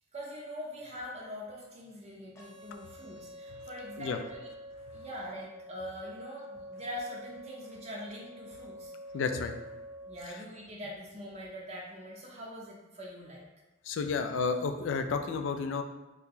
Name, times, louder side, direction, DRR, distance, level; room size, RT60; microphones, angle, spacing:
voice 1, 0.1-4.5 4.9-8.9 10.1-13.4, equal, 35° right, -3 dB, 0.5 m, -43 dB
sound 1, 2.4-10.4, equal, 15° left, 0.6 m, -47 dB
voice 2, 9.1-9.5 13.8-15.8, left 5 dB, 70° left, 6 dB, 0.3 m, -31 dB
2.9 x 2.8 x 3.6 m, 1.0 s
head